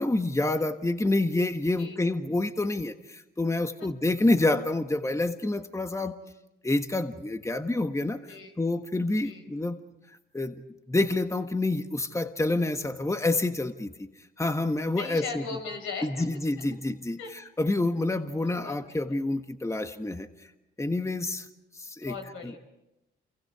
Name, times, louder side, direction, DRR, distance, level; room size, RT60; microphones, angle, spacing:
voice 1, 0.0-6.2 6.6-8.2 8.6-9.8 10.3-10.6 10.9-13.9 14.4-15.4 16.0-20.3 20.8-21.5 21.7-22.1 22.4-22.6, left 2 dB, 15° left, 8 dB, 1.5 m, -28 dB
voice 2, 8.2-8.6 9.2-9.4 15.0-16.3 17.2-17.3 18.4-18.7 22.0-22.6, left 5 dB, 80° left, 4 dB, 4.8 m, -38 dB
29.0 x 24.5 x 4.8 m, 0.94 s
supercardioid pair, 55°, 21 cm